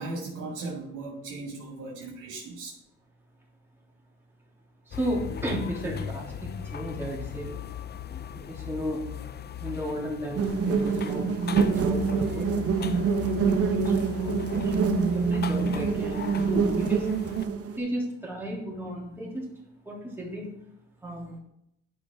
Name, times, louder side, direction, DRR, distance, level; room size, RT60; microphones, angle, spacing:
voice 1, 0.0-2.7, right 3 dB, 70° right, -2 dB, 2.1 m, -37 dB
sound 1, 4.9-17.4, left 9 dB, 35° left, 0.4 m, -39 dB
voice 2, 4.9-7.5 8.5-9.0 9.6-11.3 11.5-12.7 13.4-17.1 17.7-19.5 19.8-20.5 21.0-21.4, equal, 10° right, -4 dB, 3.0 m, -33 dB
Wild bees, 10.4-17.8, right 5 dB, 50° right, 0.9 m, -26 dB
9.8 x 5.4 x 3.6 m, 0.77 s
cardioid pair, 90°, 30 cm